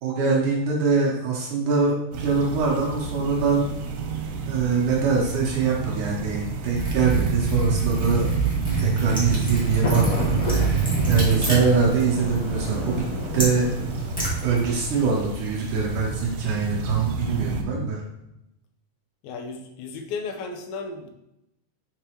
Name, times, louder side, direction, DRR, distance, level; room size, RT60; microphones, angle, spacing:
voice 1, 0.0-3.7 4.5-8.3 8.8-13.0 13.3-13.7 14.4-18.0, right 5 dB, 65° right, -3 dB, 2.3 m, -23 dB
sound 1, 2.1-17.6, right 4 dB, 90° right, 2.7 m, -32 dB
Liquid, 6.7-15.0, right 3 dB, 10° left, 0.4 m, -25 dB
sound 2, 8.6-15.2, left 1 dB, 55° left, 1.7 m, -32 dB
voice 2, 19.2-21.1, left 4 dB, 80° left, 4 dB, 2.5 m, -34 dB
6.0 x 5.3 x 3.0 m, 0.86 s
omnidirectional pair, 4.3 m